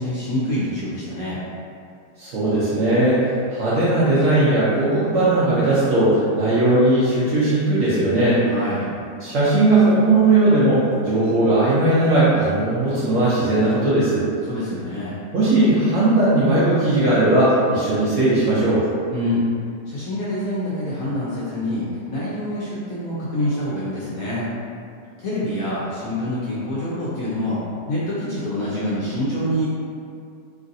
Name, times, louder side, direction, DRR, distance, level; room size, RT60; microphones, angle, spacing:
voice 1, 0.0-1.4 8.4-8.9 14.4-15.2 19.1-19.4 19.9-24.5 25.2-27.6 27.9-29.7, left 1 dB, 70° left, -8 dB, 0.8 m, -26 dB
voice 2, 2.2-8.4 9.2-14.2 15.3-18.8, right 2 dB, 65° right, -10 dB, 0.8 m, -18 dB
3.1 x 2.5 x 2.5 m, 2.4 s
omnidirectional pair, 1.9 m